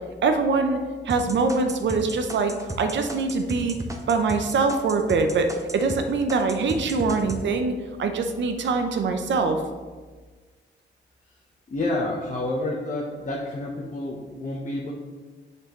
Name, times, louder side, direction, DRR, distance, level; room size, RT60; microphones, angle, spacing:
voice 1, 0.2-0.8 1.0-3.8 4.1-9.6, right 4 dB, 75° right, 6 dB, 0.7 m, -23 dB
sound 1, 1.1-6.0 6.3-7.4, right 2 dB, 15° right, 0.8 m, -34 dB
voice 2, 11.7-14.9, left 2 dB, 40° left, -2 dB, 0.9 m, -29 dB
6.6 x 5.4 x 3.1 m, 1.4 s
cardioid pair, 70°, 19 cm